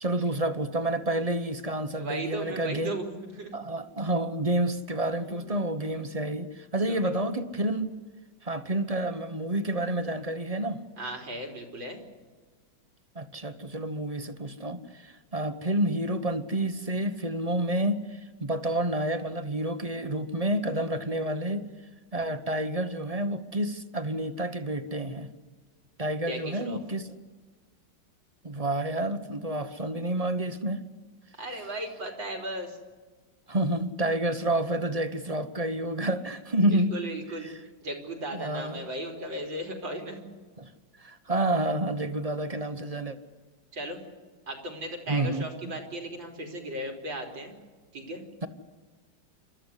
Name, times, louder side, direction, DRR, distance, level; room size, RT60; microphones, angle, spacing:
voice 1, 0.0-3.0 3.5-7.9 8.4-10.8 13.1-21.6 22.1-25.3 26.0-27.1 28.4-30.8 33.5-36.9 37.3-37.6 38.3-38.9 40.6-40.7 41.0-43.2 45.1-45.7, right 1 dB, 25° right, 10 dB, 0.9 m, -29 dB
voice 2, 1.9-3.6 5.3-5.4 6.9-7.0 11.0-12.0 26.3-26.8 31.4-32.8 36.7-37.5 37.8-40.2 43.7-44.0 44.5-47.5 47.9-48.2, right 1 dB, 90° right, 3 dB, 4.3 m, -36 dB
28.0 x 13.5 x 9.9 m, 1.4 s
omnidirectional pair, 2.0 m